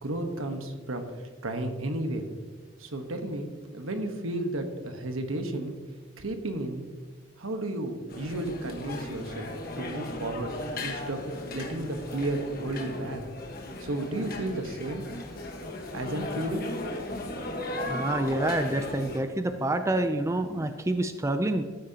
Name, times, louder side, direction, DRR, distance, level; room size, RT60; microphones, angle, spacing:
voice 1, 0.0-2.2 2.8-5.7 6.2-6.8 7.4-9.5 9.8-10.5 10.8-11.2 11.5-13.2 13.8-15.0 15.9-16.6, right 1 dB, 90° right, 6 dB, 1.2 m, -33 dB
sound 1, 8.1-19.2, left 2 dB, 45° left, 1.3 m, -36 dB
voice 2, 17.9-21.6, right 1 dB, 15° right, 9 dB, 0.4 m, -27 dB
13.5 x 8.9 x 2.9 m, 1.5 s
head